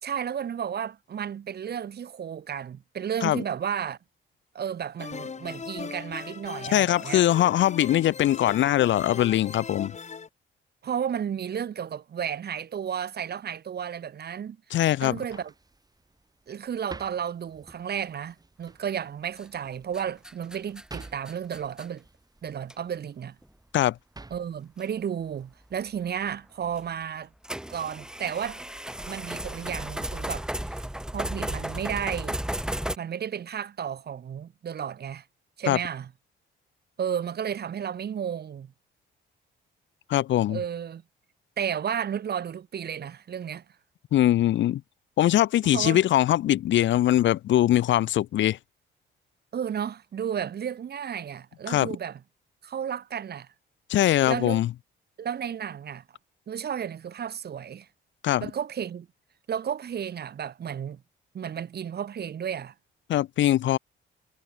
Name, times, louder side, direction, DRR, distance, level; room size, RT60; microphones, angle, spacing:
voice 1, 0.0-4.0 4.5-7.2 10.8-14.6 15.0-15.5 16.5-22.0 22.4-23.4 24.3-27.3 27.7-28.6 29.1-30.9 31.1-32.4 33.0-35.2 35.6-36.1 37.0-38.7 40.5-41.0 41.6-43.6 45.6-46.0 49.5-52.2 52.6-53.5 54.3-54.6 55.2-56.0 56.5-57.9 58.4-59.1 59.5-61.0 61.3-62.7, right 8 dB, 55° right, 2.7 m, -33 dB
sound 1, 5.0-10.3, left 5 dB, 35° left, 2.2 m, -39 dB
voice 2, 6.7-9.9 14.7-15.2 23.7-23.9 35.7-35.8 40.1-40.6 44.1-44.8 45.2-48.6 51.7-51.9 53.9-54.7 58.2-58.5 63.1-63.8, left 13 dB, 70° left, 0.8 m, -22 dB
sound 2, 14.9-26.1, right 3 dB, 20° right, 5.6 m, -51 dB
sound 3, 19.4-19.7 19.9-21.9 22.7-22.8 23.4-23.5 24.8-24.9 26.7-26.9 27.4-33.0, right 1 dB, 5° right, 0.8 m, -34 dB
cardioid pair, 90°, 20 cm